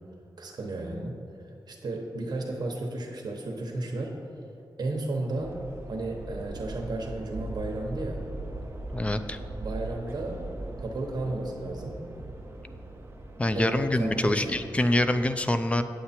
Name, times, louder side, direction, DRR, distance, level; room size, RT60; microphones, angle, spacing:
voice 1, 0.4-1.1 1.7-4.1 4.8-5.6 5.9-8.2 9.5-10.4 10.8-12.0 13.5-14.5, right 2 dB, 65° right, 0 dB, 1.0 m, -33 dB
sound 1, 5.3-15.3, right 2 dB, 30° right, 1.0 m, -40 dB
voice 2, 8.9-9.4 13.4-15.8, left 1 dB, 15° left, 9 dB, 0.4 m, -25 dB
9.3 x 7.7 x 4.3 m, 2.6 s
wide cardioid pair, 170°, 8 cm